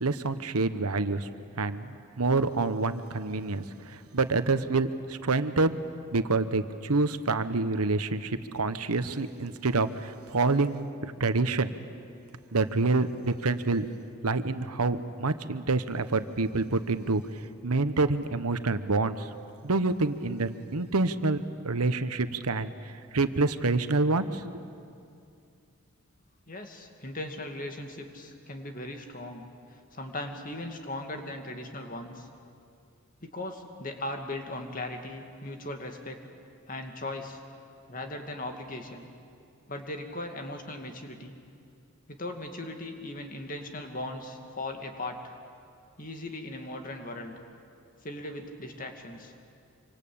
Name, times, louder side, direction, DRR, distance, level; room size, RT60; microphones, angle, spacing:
voice 1, 0.0-1.3 1.6-5.8 6.1-11.7 12.5-13.8 14.2-17.2 17.6-19.3 19.6-24.5, right 3 dB, 90° right, 11 dB, 1.1 m, -27 dB
voice 2, 26.5-29.5 29.9-32.3 33.2-36.2 36.7-37.4 37.9-39.1 39.7-41.4 42.1-45.4 46.0-47.3 48.0-49.3, left 1 dB, 40° left, 4 dB, 2.3 m, -38 dB
26.5 x 25.0 x 8.7 m, 2.4 s
head